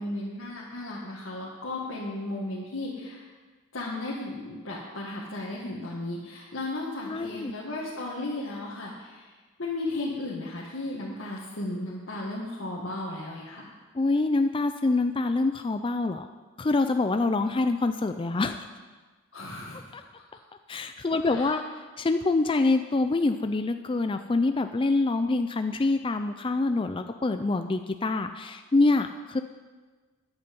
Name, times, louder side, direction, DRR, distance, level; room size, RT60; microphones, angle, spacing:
voice 1, 0.0-3.2 3.7-9.3 9.6-13.7 19.3-19.8 21.2-21.6, left 2 dB, 85° left, -5 dB, 1.8 m, -35 dB
voice 2, 7.0-7.5 13.9-16.3 16.6-18.6 19.9-20.0 20.7-21.6 22.0-29.4, left 3 dB, 25° left, 8 dB, 0.4 m, -25 dB
13.5 x 9.8 x 5.3 m, 1.4 s
head